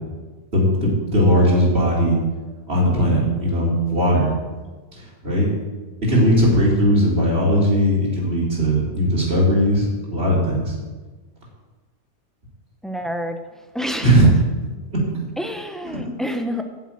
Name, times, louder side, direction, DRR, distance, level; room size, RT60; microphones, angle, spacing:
voice 1, 0.5-2.2 2.7-4.3 5.0-5.5 6.0-10.7 14.0-14.3 14.9-15.0, equal, 40° right, -4 dB, 3.7 m, -18 dB
voice 2, 12.8-13.4 13.7-14.1 15.4-16.6, equal, ahead, 5 dB, 0.5 m, -27 dB
9.3 x 7.2 x 8.9 m, 1.3 s
omnidirectional pair, 1.6 m